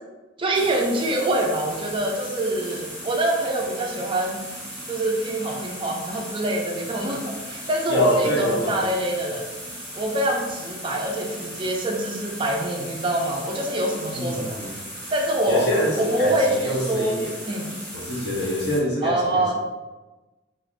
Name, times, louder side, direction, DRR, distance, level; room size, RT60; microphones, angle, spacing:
voice 1, 0.4-4.5 4.9-9.5 10.0-14.6 15.1-15.7 16.0-17.7 19.0-19.5, right 1 dB, 25° right, 0 dB, 0.4 m, -25 dB
sound 1, 0.5-18.8, equal, 5° left, 0.8 m, -37 dB
voice 2, 7.9-8.8 14.1-14.7 15.5-17.3 17.9-19.5, equal, 60° left, -2 dB, 0.7 m, -25 dB
3.3 x 2.4 x 2.4 m, 1.2 s
head